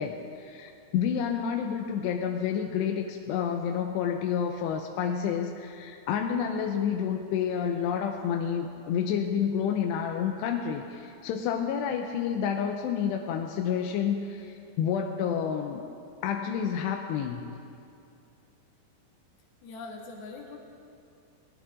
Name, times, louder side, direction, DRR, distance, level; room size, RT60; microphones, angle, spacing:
voice 1, 0.0-15.8 16.2-17.5, left 8 dB, 85° left, 3 dB, 2.8 m, -29 dB
voice 2, 19.6-20.6, left 3 dB, 65° left, -2 dB, 3.5 m, -42 dB
23.0 x 18.5 x 2.5 m, 2.5 s
omnidirectional pair, 4.9 m